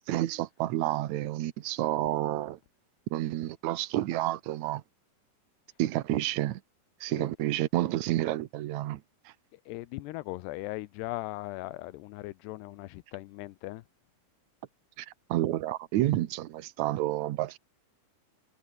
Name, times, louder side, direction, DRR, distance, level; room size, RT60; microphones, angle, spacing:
voice 1, 0.1-2.6 3.1-4.8 5.8-6.6 7.0-9.3 15.0-17.6, right 14 dB, 85° right, 1.6 m, -30 dB
voice 2, 9.5-13.8, left 18 dB, 90° left, 2.9 m, -39 dB
omnidirectional pair, 4.7 m